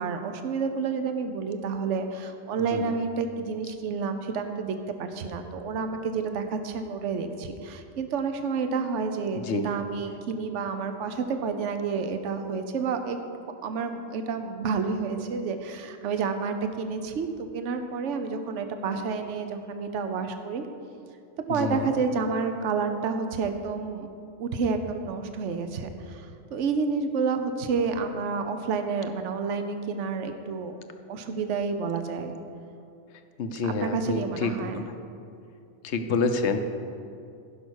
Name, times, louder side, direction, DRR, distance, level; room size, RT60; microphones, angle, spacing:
voice 1, 0.0-13.2 13.6-20.6 21.5-24.1 24.4-26.3 26.5-30.7 31.1-32.4 33.6-34.9, right 5 dB, 60° right, 7 dB, 1.1 m, -29 dB
voice 2, 21.5-21.9 33.4-34.8 35.8-36.6, left 4 dB, 60° left, 7 dB, 1.0 m, -28 dB
15.0 x 5.8 x 6.4 m, 2.6 s
omnidirectional pair, 1.4 m